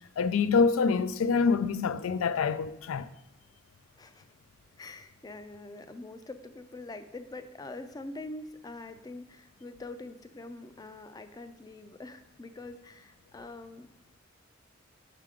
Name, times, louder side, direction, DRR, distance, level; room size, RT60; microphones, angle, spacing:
voice 1, 0.2-3.1, left 5 dB, 90° left, 0.4 m, -26 dB
voice 2, 4.8-13.9, left 2 dB, 20° left, 0.4 m, -44 dB
5.6 x 5.0 x 4.9 m
head